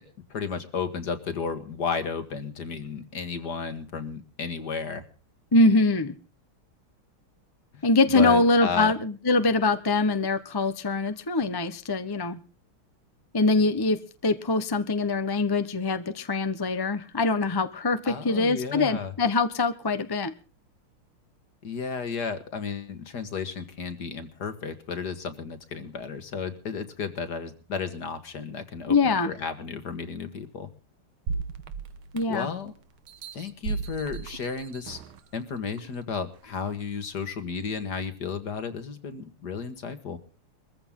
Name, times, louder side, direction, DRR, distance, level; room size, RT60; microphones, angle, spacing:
voice 1, 0.3-5.0 7.7-7.9 8.1-8.9 18.0-19.1 21.6-30.7 32.3-32.7 33.3-35.0 35.3-40.2, left 5 dB, 50° left, 10 dB, 2.2 m, -33 dB
voice 2, 5.5-6.1 7.8-12.4 13.3-14.0 14.2-20.3 28.9-29.3 32.1-32.5, left 3 dB, 30° left, 10 dB, 0.4 m, -23 dB
sound 1, 31.3-32.6 33.1-35.2 35.8-35.9, right 4 dB, 70° right, 2.0 m, -35 dB
22.5 x 15.0 x 3.8 m, 0.37 s
omnidirectional pair, 2.3 m